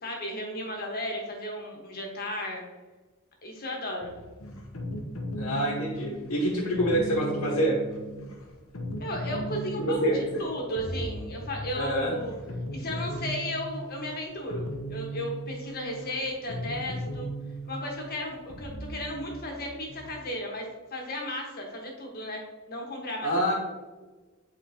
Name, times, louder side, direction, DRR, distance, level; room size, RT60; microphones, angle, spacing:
voice 1, 0.0-2.6 3.4-4.1 9.0-10.1 10.4-12.3 12.7-17.3 17.7-20.6 20.9-22.4 22.7-23.5, left 1 dB, 45° left, 0 dB, 1.5 m, -34 dB
sound 1, 4.0-20.2, equal, 70° left, 1.0 m, -37 dB
voice 2, 5.4-7.8 9.9-10.4 11.7-12.1 23.2-23.5, right 1 dB, 85° left, -5 dB, 1.4 m, -26 dB
8.4 x 4.4 x 2.9 m, 1.3 s
head